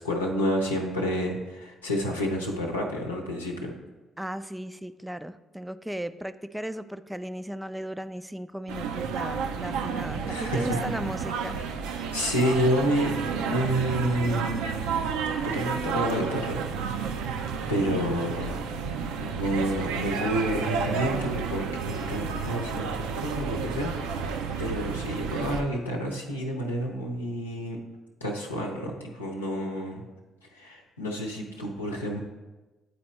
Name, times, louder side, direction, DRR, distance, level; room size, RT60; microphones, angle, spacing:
voice 1, 0.0-3.7 10.3-10.8 12.1-13.1 13.5-14.8 15.4-16.6 17.7-18.6 19.2-27.8 28.2-30.0 30.5-32.2, equal, 90° left, 0 dB, 0.7 m, -29 dB
voice 2, 4.2-11.6, right 1 dB, 5° right, 12 dB, 0.3 m, -36 dB
sound 1, 8.7-25.6, right 6 dB, 75° right, 0.4 m, -31 dB
9.3 x 4.2 x 3.2 m, 1.1 s
figure-of-eight pair, 45°, 0 cm